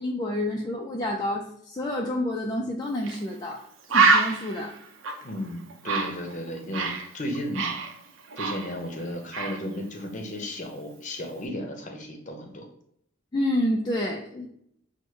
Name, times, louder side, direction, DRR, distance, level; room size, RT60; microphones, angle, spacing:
voice 1, 0.0-3.6 3.9-4.7 13.3-14.5, left 1 dB, 20° left, -1 dB, 0.3 m, -28 dB
Bird, 3.0-3.2 3.5-3.6 3.9-7.1 7.3-9.0 9.3-9.6, right 4 dB, 80° right, 0.6 m, -25 dB
voice 2, 5.2-6.9 7.1-7.7 8.4-12.7, left 1 dB, 40° left, 3 dB, 0.7 m, -34 dB
6.2 x 2.1 x 3.1 m, 0.71 s
head